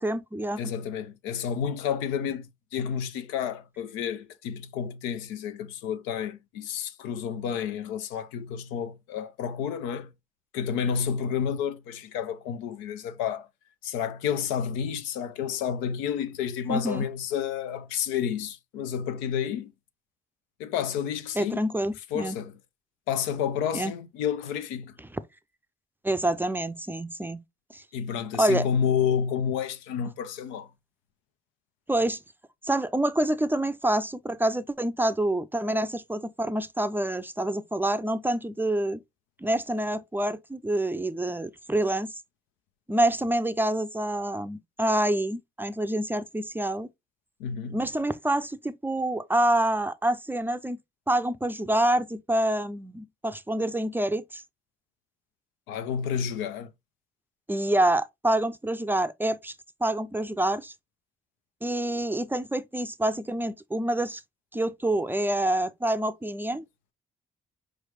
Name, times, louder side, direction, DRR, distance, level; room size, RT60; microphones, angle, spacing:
voice 1, 0.0-0.7 16.7-17.0 21.4-22.4 23.7-23.9 26.0-27.4 27.7-27.8 28.4-28.7 31.9-32.2 32.6-39.0 39.4-42.1 42.9-46.9 47.7-50.8 51.1-54.4 57.5-59.5 59.8-60.7 61.6-64.2 64.5-66.6, right 1 dB, 10° right, 0.5 m, -27 dB
voice 2, 0.6-10.1 10.5-13.5 13.8-19.7 20.6-21.6 22.1-22.6 23.1-25.0 27.9-30.7 47.4-47.8 55.7-56.7, left 8 dB, 80° left, 0.5 m, -30 dB
4.7 x 3.2 x 3.0 m
hypercardioid pair, 45°, 20 cm